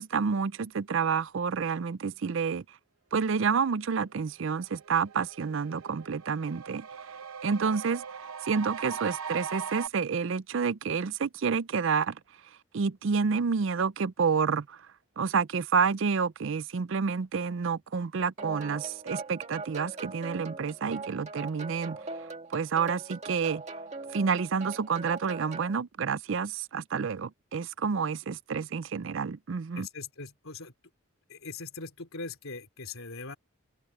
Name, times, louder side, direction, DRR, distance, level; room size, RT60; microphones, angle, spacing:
voice 1, 0.0-2.6 3.1-6.9 7.4-12.2 12.7-14.8 15.2-22.0 22.5-23.6 24.1-29.9, right 5 dB, 60° right, 0.5 m, -29 dB
sound 1, 4.1-4.2 4.5-9.9, right 6 dB, 90° right, 0.9 m, -40 dB
sound 2, 18.4-25.8, right 3 dB, 30° right, 2.3 m, -41 dB
voice 2, 29.8-30.7 31.3-33.4, left 4 dB, 85° left, 3.0 m, -41 dB
open air
head